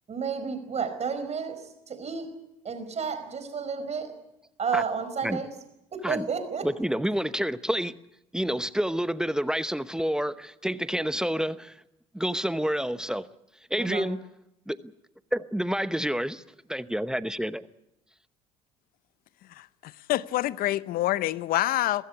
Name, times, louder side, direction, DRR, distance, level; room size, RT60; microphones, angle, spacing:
voice 1, 0.1-2.3 2.6-4.1 4.6-5.5 5.9-6.7 13.8-14.0, right 6 dB, 40° right, 4.8 m, -31 dB
voice 2, 6.6-7.9 8.3-11.8 12.1-13.3 13.7-14.2 14.7-14.8 15.3-16.4 16.7-17.7, equal, 5° right, 0.9 m, -28 dB
voice 3, 19.5-22.0, left 15 dB, 60° left, 0.8 m, -27 dB
23.0 x 15.5 x 9.7 m
hypercardioid pair, 65°, 17 cm